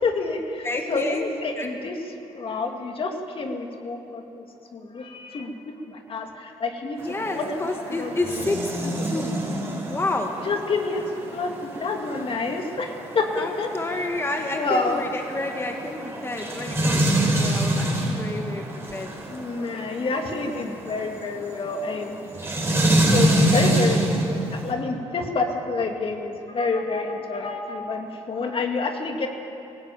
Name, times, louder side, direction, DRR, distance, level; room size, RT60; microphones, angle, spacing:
voice 1, 0.0-1.9 2.3-4.4 4.7-5.6 5.9-7.6 7.9-8.5 10.4-11.0 11.3-13.7 14.5-15.1 19.3-22.2 23.1-24.2 24.5-29.3, left 3 dB, 50° left, 3 dB, 2.3 m, -28 dB
voice 2, 0.6-1.2 1.6-1.7 7.0-9.3 9.9-10.3 13.3-18.6 18.9-19.1, left 2 dB, 20° left, 3 dB, 1.9 m, -29 dB
sound 1, 7.0-24.7, right 1 dB, 20° right, 4.6 m, -26 dB
17.0 x 17.0 x 9.2 m, 2.9 s
cardioid pair, 85°, 12 cm